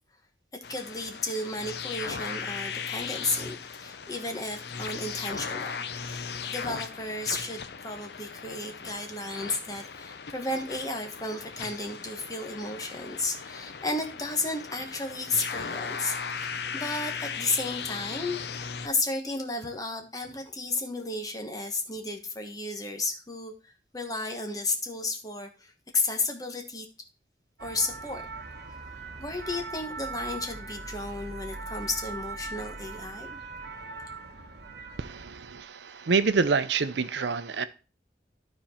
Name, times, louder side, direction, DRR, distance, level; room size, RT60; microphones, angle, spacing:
sound 1, 0.6-18.9, left 6 dB, 65° left, 0.7 m, -37 dB
voice 1, 0.7-6.2 6.5-26.9 27.6-28.2 29.2-33.3, left 2 dB, 20° left, 4 dB, 1.3 m, -33 dB
sound 2, 27.6-35.3, right 3 dB, 65° right, 1.2 m, -40 dB
voice 2, 35.0-37.7, right 4 dB, 85° right, 13 dB, 0.6 m, -27 dB
12.0 x 4.5 x 4.3 m, 0.32 s
head